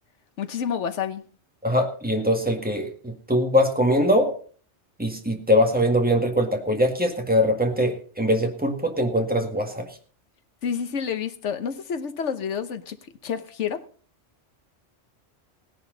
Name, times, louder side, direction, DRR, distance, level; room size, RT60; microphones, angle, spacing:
voice 1, 0.4-1.2 10.6-13.0 13.2-13.9, left 7 dB, 85° left, 1.3 m, -29 dB
voice 2, 1.6-4.3 5.0-9.9, equal, 10° right, 1.8 m, -22 dB
17.5 x 11.0 x 4.0 m
omnidirectional pair, 1.2 m